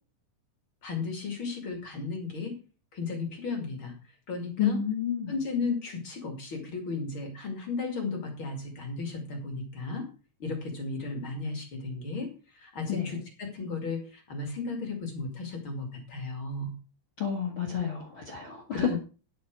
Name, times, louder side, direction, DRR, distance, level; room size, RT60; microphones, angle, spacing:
voice 1, 0.8-2.5 2.9-3.9 4.3-4.8 5.3-10.1 10.4-12.3 12.5-16.7 18.7-19.0, left 4 dB, 45° left, 3 dB, 1.8 m, -34 dB
voice 2, 4.6-5.3 12.9-13.1 17.2-18.9, left 8 dB, 85° left, 0 dB, 1.1 m, -30 dB
10.5 x 9.3 x 4.7 m, 0.35 s
omnidirectional pair, 5.9 m